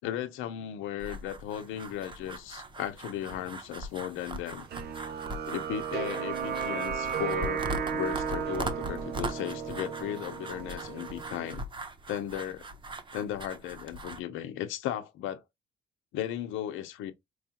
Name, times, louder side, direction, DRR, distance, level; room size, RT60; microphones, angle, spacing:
voice 1, 0.0-4.6 5.5-11.6 12.1-12.6 13.1-15.4 16.1-17.1, left 11 dB, 90° left, 0.8 m, -36 dB
sound 1, 1.0-14.2, right 2 dB, 25° right, 0.8 m, -40 dB
sound 2, 4.7-11.6, right 7 dB, 55° right, 0.6 m, -34 dB
4.7 x 2.4 x 2.9 m
cardioid pair, 115°, 20 cm